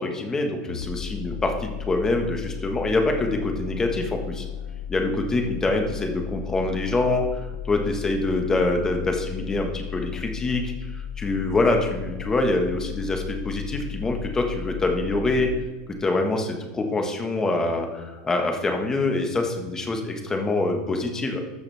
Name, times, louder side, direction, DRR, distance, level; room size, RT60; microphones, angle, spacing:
voice 1, 0.0-4.4 4.9-15.5 15.9-21.4, left 2 dB, 20° left, 3 dB, 1.6 m, -25 dB
sound 1, 0.7-15.6, left 8 dB, 85° left, 0.8 m, -35 dB
14.0 x 6.5 x 3.5 m, 1.2 s
supercardioid pair, 125°, 3 cm